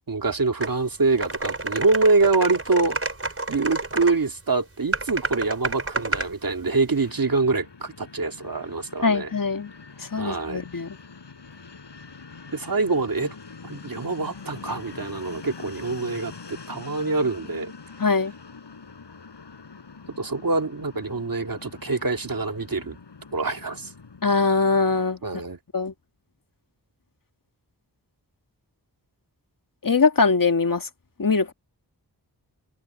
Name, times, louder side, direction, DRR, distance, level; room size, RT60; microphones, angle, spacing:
voice 1, 0.1-3.0 3.5-9.3 10.2-10.6 12.5-13.4 13.6-17.7 20.2-23.0 23.3-23.9 25.2-25.6, right 3 dB, 55° right, 2.3 m, -25 dB
sound 1, 0.6-0.7 1.2-4.1 4.9-6.3, right 3 dB, 35° right, 4.4 m, -29 dB
Fixed-wing aircraft airplane, 7.0-25.0, left 4 dB, 80° left, 7.6 m, -44 dB
voice 2, 9.0-9.7 10.0-11.0 18.0-18.3 24.2-25.2 25.7-25.9 29.8-30.9 31.2-31.5, left 4 dB, 50° left, 1.7 m, -22 dB
cardioid pair, 45°, 41 cm